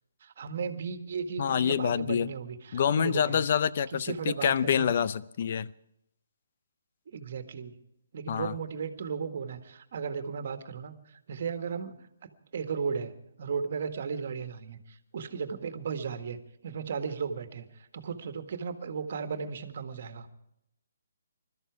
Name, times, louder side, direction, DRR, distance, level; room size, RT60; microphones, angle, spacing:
voice 1, 0.2-3.4 3.9-4.9 7.1-7.8 8.1-16.4 16.6-20.3, right 6 dB, 50° right, 1.7 m, -36 dB
voice 2, 1.4-2.3 2.7-5.7 8.3-8.5, left 8 dB, 45° left, 0.6 m, -27 dB
21.5 x 13.5 x 4.7 m
figure-of-eight pair, 140°, 0 cm